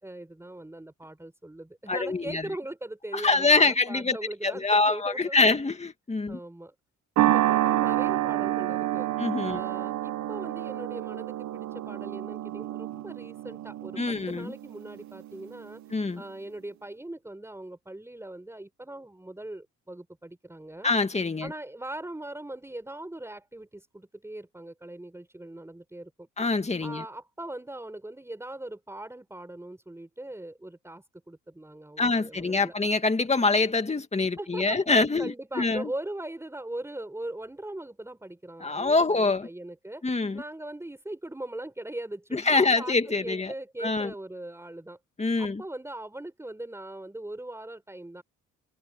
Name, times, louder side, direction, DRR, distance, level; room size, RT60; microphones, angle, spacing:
voice 1, 0.0-5.7 6.3-6.7 7.2-9.1 9.4-15.8 16.2-20.9 21.4-26.3 26.8-32.8 34.4-34.9 35.2-45.0 45.4-48.2, right 1 dB, 10° right, 4.4 m, -40 dB
voice 2, 1.9-2.4 3.1-4.2 4.4-6.4 9.2-9.6 14.0-14.5 15.9-16.2 20.8-21.5 26.4-27.0 32.0-35.9 38.6-39.5 40.0-40.4 42.3-43.5 43.8-44.1 45.2-45.6, left 3 dB, 20° left, 2.2 m, -25 dB
sound 1, 7.2-15.7, right 14 dB, 65° right, 0.8 m, -28 dB
cardioid pair, 90°, 30 cm